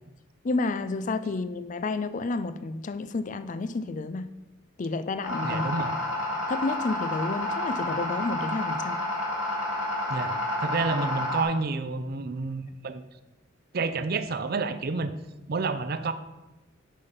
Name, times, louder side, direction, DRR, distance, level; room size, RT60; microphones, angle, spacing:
voice 1, 0.4-4.3 4.8-5.9 6.5-9.0, left 3 dB, 40° left, 13 dB, 0.4 m, -30 dB
sound 1, 5.2-11.4, left 1 dB, 85° left, 2.3 m, -30 dB
voice 2, 5.4-5.9 10.1-13.0 13.7-15.1 15.5-16.1, right 3 dB, 50° right, 10 dB, 0.5 m, -29 dB
8.3 x 5.7 x 5.1 m, 1.1 s
head